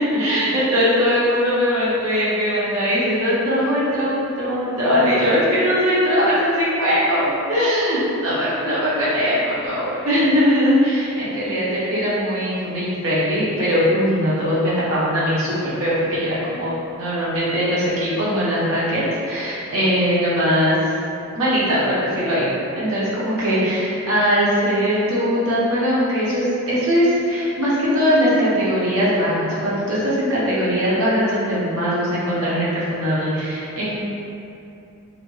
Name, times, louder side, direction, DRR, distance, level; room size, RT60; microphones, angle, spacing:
voice 1, 0.0-20.8 21.3-22.5 22.8-34.0, equal, 70° right, -9 dB, 0.9 m, -20 dB
4.0 x 2.3 x 3.2 m, 2.7 s
head